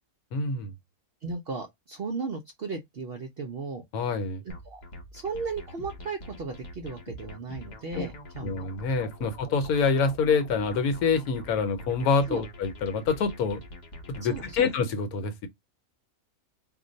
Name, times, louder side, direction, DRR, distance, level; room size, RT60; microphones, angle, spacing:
voice 1, 0.3-0.7 3.9-4.4 7.9-8.1 8.4-13.6 14.1-15.5, left 5 dB, 80° left, 1.1 m, -26 dB
voice 2, 1.2-3.8 4.4-4.8 5.1-8.5 12.3-12.4 14.2-14.7, right 4 dB, 60° right, 0.6 m, -35 dB
sound 1, 4.5-14.8, left 1 dB, 50° left, 0.5 m, -44 dB
2.5 x 2.2 x 3.8 m
omnidirectional pair, 1.6 m